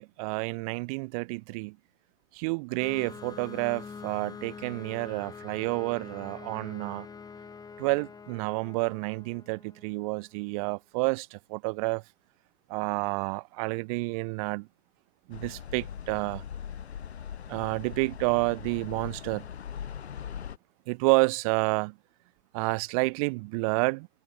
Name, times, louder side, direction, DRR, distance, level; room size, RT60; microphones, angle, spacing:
voice 1, 0.0-1.8 2.3-7.1 7.8-12.0 12.7-14.7 15.3-16.4 17.5-19.5 20.9-21.9 22.5-24.1, right 28 dB, 30° right, 1.1 m, -29 dB
sound 1, 2.8-10.1, left 5 dB, 10° left, 3.3 m, -45 dB
sound 2, 15.3-20.6, left 8 dB, 60° left, 2.7 m, -40 dB
figure-of-eight pair, 115°, 37 cm